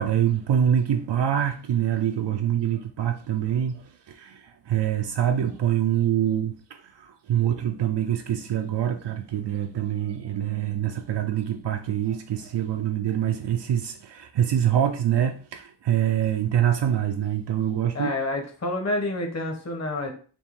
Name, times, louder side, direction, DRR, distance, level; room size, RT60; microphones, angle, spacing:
voice 1, 0.0-18.1, right 10 dB, 75° right, 0.5 m, -25 dB
voice 2, 17.9-20.1, left 2 dB, 40° left, 1.0 m, -28 dB
4.3 x 2.6 x 3.6 m
wide cardioid pair, 100°, 42 cm